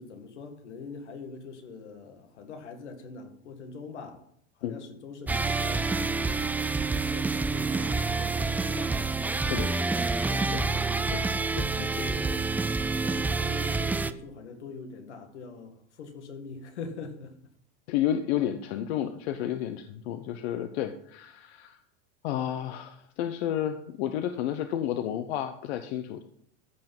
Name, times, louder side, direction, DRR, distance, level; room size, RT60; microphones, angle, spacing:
voice 1, 0.0-4.3 4.6-6.6 7.1-9.0 10.7-11.0 11.9-17.4, left 4 dB, 85° left, 2.0 m, -43 dB
sound 1, 5.3-14.1, right 3 dB, 5° right, 0.3 m, -28 dB
voice 2, 9.4-9.8 10.5-10.7 11.1-11.3 11.6-12.1 17.9-21.8 22.2-26.2, left 11 dB, 70° left, 1.0 m, -31 dB
14.0 x 5.9 x 5.5 m
supercardioid pair, 115°, 34 cm